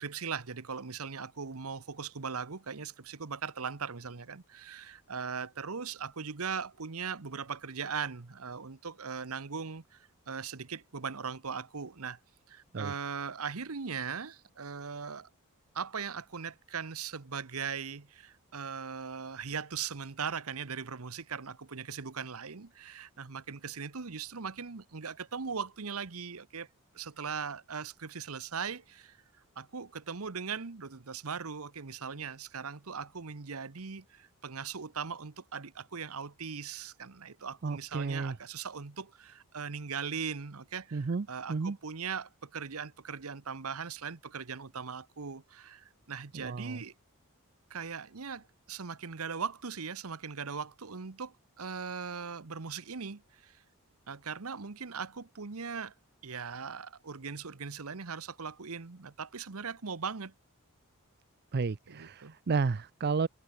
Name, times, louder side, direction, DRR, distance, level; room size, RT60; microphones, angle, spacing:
voice 1, 0.0-12.2 12.5-15.3 15.7-26.7 26.9-29.2 29.6-46.9 47.7-53.6 54.1-55.9 56.2-60.3 61.9-62.3, right 6 dB, 75° right, 1.0 m, -39 dB
voice 2, 37.6-38.4 40.9-41.8 46.3-46.8 61.5-63.3, right 4 dB, 45° right, 0.5 m, -32 dB
head